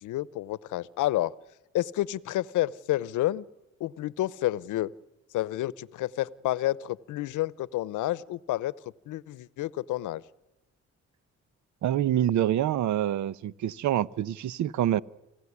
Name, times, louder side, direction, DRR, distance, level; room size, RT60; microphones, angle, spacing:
voice 1, 0.0-1.3 1.7-3.5 3.8-4.9 5.3-8.7 9.1-10.2, left 15 dB, 85° left, 20 dB, 0.8 m, -29 dB
voice 2, 11.8-15.0, right 12 dB, 70° right, 19 dB, 0.8 m, -26 dB
29.0 x 17.0 x 9.7 m, 0.96 s
cardioid pair, 90°, 30 cm